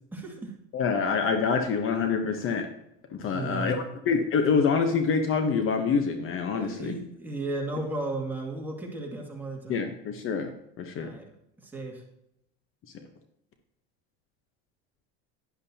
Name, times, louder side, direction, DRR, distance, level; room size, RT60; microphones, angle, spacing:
voice 1, 0.1-0.5 3.3-3.8 6.5-9.9 11.0-11.2 11.6-12.0, right 2 dB, 5° right, -2 dB, 2.3 m, -34 dB
voice 2, 0.7-2.7 3.2-6.9 9.7-10.5 10.8-11.1, left 5 dB, 45° left, 6 dB, 1.0 m, -26 dB
11.0 x 10.5 x 2.8 m, 0.82 s
supercardioid pair, 120°, 30 cm